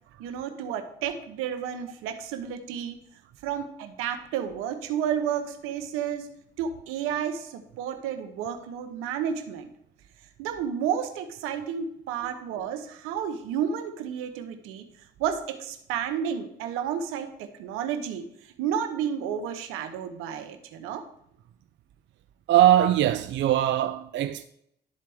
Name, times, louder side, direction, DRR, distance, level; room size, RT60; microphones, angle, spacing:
voice 1, 0.2-3.0 3.4-6.3 6.6-9.7 10.4-14.8 15.2-21.0, right 8 dB, 85° right, 0.9 m, -31 dB
voice 2, 22.5-24.4, right 12 dB, 60° right, 0.4 m, -21 dB
12.0 x 4.3 x 3.5 m
supercardioid pair, 70°, 21 cm